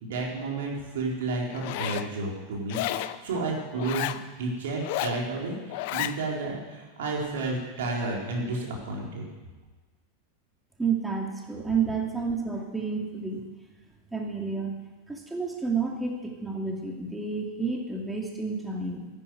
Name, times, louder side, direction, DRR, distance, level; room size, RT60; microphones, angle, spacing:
voice 1, 0.0-2.8 3.2-9.3, right 3 dB, 75° right, -2 dB, 4.0 m, -31 dB
Zipper (clothing), 1.5-2.1 2.7-3.2 3.8-4.2 4.8-5.2 5.7-6.2, left 14 dB, 60° left, 0.6 m, -31 dB
voice 2, 10.8-13.4 14.1-14.8 15.1-19.1, right 5 dB, 10° right, 0 dB, 2.5 m, -30 dB
11.0 x 10.0 x 9.2 m, 1.3 s
hypercardioid pair, 95°, 0 cm